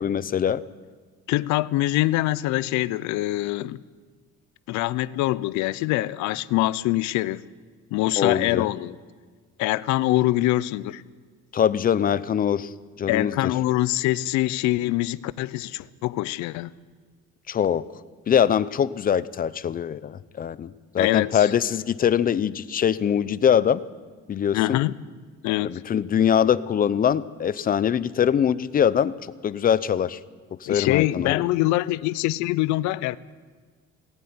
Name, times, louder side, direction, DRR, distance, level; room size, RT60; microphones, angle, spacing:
voice 1, 0.0-0.6 8.2-8.7 11.5-12.7 13.0-13.5 17.5-17.8 18.3-23.8 24.3-24.8 25.6-29.1 29.4-30.2 30.6-31.4, left 8 dB, 30° left, 17 dB, 0.6 m, -23 dB
voice 2, 1.3-3.8 4.7-7.4 7.9-9.0 9.6-11.0 13.1-16.7 21.0-21.5 24.5-25.0 25.4-25.8 30.7-33.2, left 17 dB, 75° left, 18 dB, 0.7 m, -24 dB
19.5 x 15.0 x 9.6 m, 1.5 s
cardioid pair, 135°, 29 cm